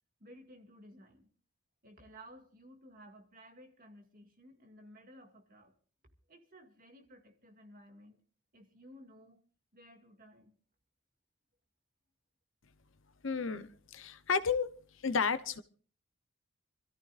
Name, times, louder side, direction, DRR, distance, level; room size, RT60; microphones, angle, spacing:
voice 1, 0.2-1.3 1.8-5.7 6.3-8.2 8.5-9.4 9.7-10.5, equal, 40° right, 2.2 m, -56 dB
voice 2, 13.2-14.7 15.0-15.6, left 5 dB, 65° left, 0.9 m, -32 dB
27.0 x 13.5 x 2.5 m
head